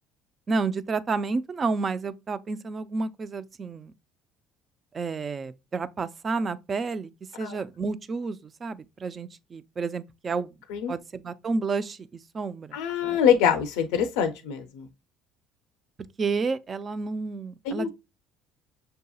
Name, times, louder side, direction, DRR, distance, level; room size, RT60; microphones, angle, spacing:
voice 1, 0.5-3.9 4.9-7.1 7.4-10.5 10.9-12.0 12.3-12.8 13.0-13.2 16.2-17.9, right 4 dB, 35° right, 0.4 m, -30 dB
voice 2, 12.7-14.9 17.6-17.9, left 8 dB, 80° left, 0.5 m, -24 dB
6.5 x 2.7 x 2.3 m
supercardioid pair, 80°, 0 cm